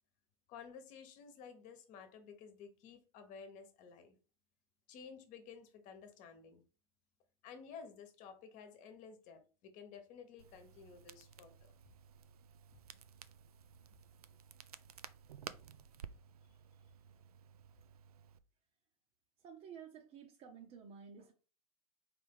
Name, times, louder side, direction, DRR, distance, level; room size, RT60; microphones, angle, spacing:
voice 1, 0.5-4.2 4.9-6.6 7.4-11.7 13.9-14.0, left 6 dB, 45° left, 8 dB, 1.1 m, -54 dB
Crackle, 10.4-18.4, right 8 dB, 90° right, 0.4 m, -55 dB
voice 2, 19.4-21.3, right 7 dB, 35° right, 1 dB, 0.8 m, -53 dB
4.2 x 3.3 x 3.6 m, 0.36 s
hypercardioid pair, 105°, 19 cm